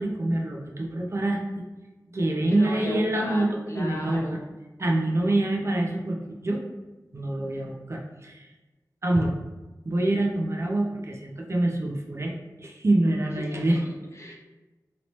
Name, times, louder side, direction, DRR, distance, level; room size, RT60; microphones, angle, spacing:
voice 1, 0.0-1.6 2.1-4.2 4.8-6.6 7.1-8.5 9.0-9.3 9.9-12.3 12.6-13.8 14.3-14.4, right 1 dB, 40° right, 0 dB, 0.5 m, -26 dB
voice 2, 2.5-4.6 13.4-14.3, left 1 dB, 40° left, -1 dB, 0.7 m, -37 dB
2.9 x 2.9 x 3.0 m, 1.1 s
wide cardioid pair, 65°, 7 cm